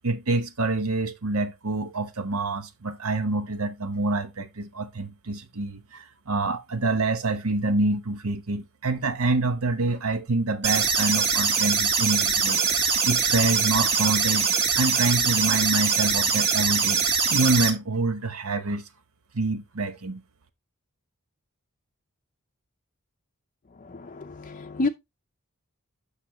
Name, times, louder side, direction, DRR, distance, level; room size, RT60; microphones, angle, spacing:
voice 1, 0.0-12.6 13.0-14.5 14.7-17.0 17.3-18.8 19.3-20.2, right 3 dB, 80° right, 1.0 m, -26 dB
sound 1, 10.6-17.7, right 5 dB, 50° right, 1.6 m, -23 dB
voice 2, 23.8-24.9, left 3 dB, 35° left, 0.5 m, -30 dB
8.4 x 5.9 x 2.9 m
head